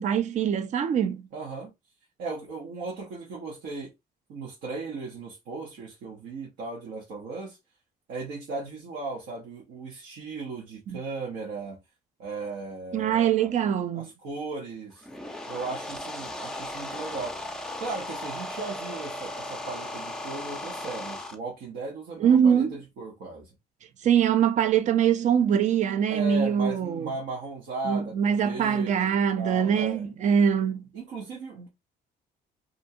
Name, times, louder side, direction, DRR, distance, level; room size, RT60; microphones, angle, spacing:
voice 1, 0.0-1.2 12.9-14.1 22.2-22.7 24.0-27.1 27.8-30.8, right 8 dB, 45° right, 0.4 m, -23 dB
voice 2, 1.3-1.7 2.2-3.9 4.3-7.6 8.1-11.8 12.2-13.5 13.9-15.1 15.5-17.4 17.8-23.5 26.1-30.0 30.9-31.7, right 3 dB, 80° right, 0.9 m, -36 dB
sound 1, 14.9-21.3, left 1 dB, 5° left, 0.5 m, -36 dB
2.7 x 2.3 x 2.7 m
cardioid pair, 110°, 17 cm